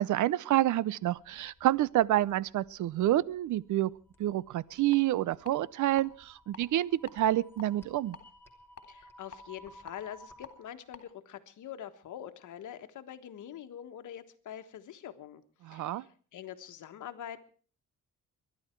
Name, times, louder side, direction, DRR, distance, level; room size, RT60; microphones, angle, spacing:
voice 1, 0.0-3.9 4.2-8.2 15.7-16.0, right 14 dB, 70° right, 0.6 m, -28 dB
sound 1, 1.0-10.7, equal, 5° left, 3.1 m, -58 dB
sound 2, 4.9-5.0 5.4-6.0 6.4-6.6 7.0-8.2 8.8-10.5 10.9-11.0, left 6 dB, 45° left, 2.9 m, -49 dB
voice 2, 8.9-17.4, left 10 dB, 70° left, 1.5 m, -45 dB
23.5 x 11.5 x 4.5 m
cardioid pair, 110°, 31 cm